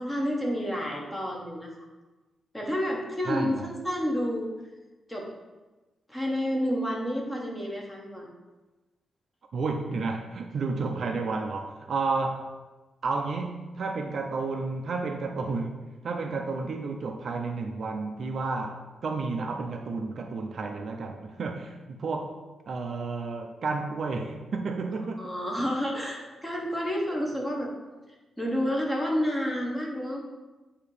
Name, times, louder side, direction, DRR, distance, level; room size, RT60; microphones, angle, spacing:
voice 1, 0.0-1.7 2.5-4.5 5.1-5.3 6.1-8.3 25.2-27.7 28.4-30.2, equal, 10° left, -2 dB, 1.2 m, -29 dB
voice 2, 3.3-3.7 9.5-12.5 13.0-25.2, right 3 dB, 50° right, 4 dB, 0.5 m, -31 dB
8.4 x 2.8 x 4.8 m, 1.2 s
wide cardioid pair, 150°, 0 cm